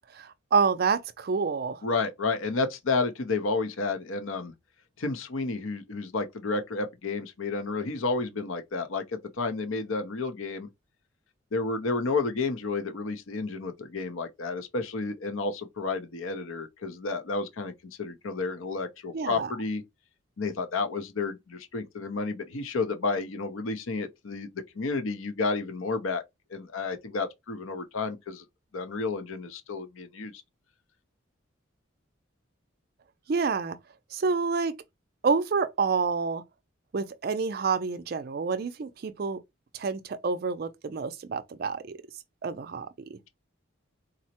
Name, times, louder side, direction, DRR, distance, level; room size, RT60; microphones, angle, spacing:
voice 1, 0.1-1.8 19.1-19.5 33.3-33.8 34.1-34.7 35.2-36.4 36.9-39.4 39.7-42.0 42.4-43.2, right 5 dB, 45° right, 0.4 m, -28 dB
voice 2, 1.8-4.5 5.0-10.7 11.5-17.7 18.0-19.8 20.4-26.2 26.5-28.4 28.7-30.3, left 3 dB, 75° left, 0.7 m, -31 dB
3.9 x 2.1 x 2.8 m
head